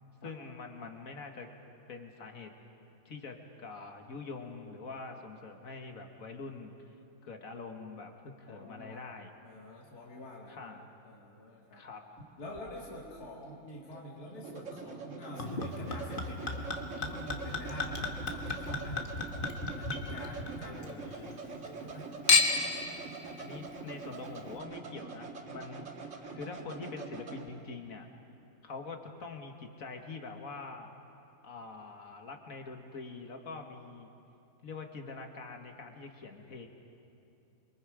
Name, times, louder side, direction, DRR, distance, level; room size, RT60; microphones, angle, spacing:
voice 1, 0.2-1.5 1.9-2.5 3.1-6.9 7.2-9.3 10.5-10.9 11.7-12.0 20.7-21.2 23.4-25.9 26.3-28.1 28.6-30.9 31.4-34.1 34.6-36.7, left 4 dB, 65° left, 4 dB, 2.0 m, -44 dB
voice 2, 8.5-9.0 9.4-11.8 12.4-19.0 19.8-21.4 21.8-22.1, left 1 dB, 80° left, -3 dB, 2.4 m, -46 dB
sound 1, 12.2-27.5, right 4 dB, 55° right, 1.9 m, -44 dB
Chink clink / Liquid, 15.4-20.9 21.2-21.9 22.3-22.8 23.5-23.6, left 4 dB, 35° left, 1.7 m, -32 dB
28.5 x 23.0 x 5.0 m, 2.8 s
omnidirectional pair, 1.6 m